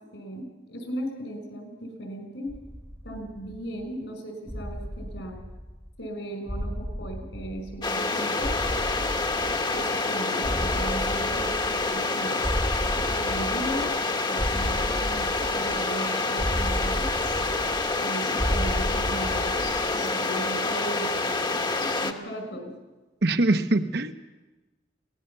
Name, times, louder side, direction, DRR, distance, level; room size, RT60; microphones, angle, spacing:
voice 1, 0.1-2.5 3.0-5.4 6.0-8.5 9.7-12.4 13.0-13.9 14.3-17.1 18.0-22.7, right 1 dB, 80° left, 5 dB, 5.3 m, -37 dB
sound 1, 2.5-3.8 4.5-6.0 6.5-8.1 8.4-10.0 10.4-12.1 12.4-14.0 14.4-16.0 16.4-18.0 18.4-20.0, equal, 5° left, 1.3 m, -33 dB
sound 2, 7.8-22.1, left 3 dB, 25° left, 1.2 m, -27 dB
voice 2, 23.2-24.1, right 2 dB, 65° right, 8 dB, 1.1 m, -23 dB
22.5 x 18.0 x 7.0 m, 1.2 s
head